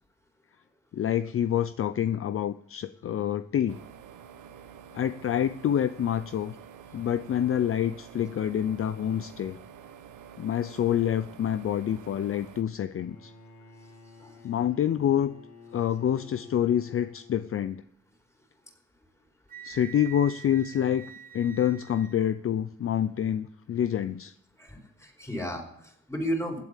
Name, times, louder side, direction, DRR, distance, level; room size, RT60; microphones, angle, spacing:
voice 1, 0.9-3.8 4.9-6.5 6.9-9.6 10.4-13.3 14.4-15.3 15.7-17.8 19.6-21.1 21.3-24.3, left 10 dB, 45° left, 13 dB, 0.6 m, -27 dB
sound 1, 3.7-12.6, right 8 dB, 80° right, 1.2 m, -48 dB
Bowed string instrument, 12.7-17.9, left 4 dB, 65° left, 5.4 m, -51 dB
Wind instrument woodwind instrument, 19.5-22.3, right 9 dB, 30° right, 0.9 m, -46 dB
voice 2, 24.6-26.6, equal, 10° left, 3 dB, 4.7 m, -34 dB
16.0 x 8.3 x 8.2 m, 0.72 s
cardioid pair, 90°, 30 cm